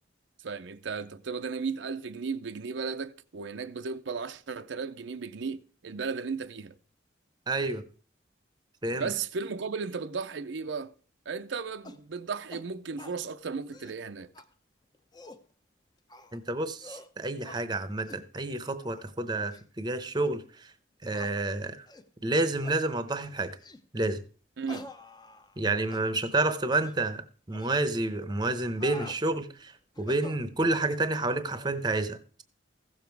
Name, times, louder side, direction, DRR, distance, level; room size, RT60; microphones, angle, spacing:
voice 1, 0.4-6.7 8.9-10.9 11.3-14.3 24.6-24.9, right 5 dB, 75° right, 0.6 m, -35 dB
voice 2, 7.5-7.8 8.8-9.1 16.3-20.7 21.0-21.8 22.2-23.6 23.9-24.2 25.6-29.7 30.0-32.4, right 2 dB, 20° right, 0.8 m, -29 dB
sound 1, 11.8-12.0 12.5-12.7 13.0-13.2 13.6-14.0 14.3-14.5 14.9-15.4 16.1-16.4 16.8-17.1 17.4-17.6 18.1-18.2 18.8-19.1 19.5-19.6 20.2-20.3 21.1-21.3 21.9-22.1 22.6-22.8 23.6-23.8 24.7-25.6 25.9-26.0 26.7-27.0 27.5-27.7 28.5-29.2 29.9-30.9, left 2 dB, 20° left, 0.6 m, -47 dB
15.0 x 7.1 x 4.6 m
head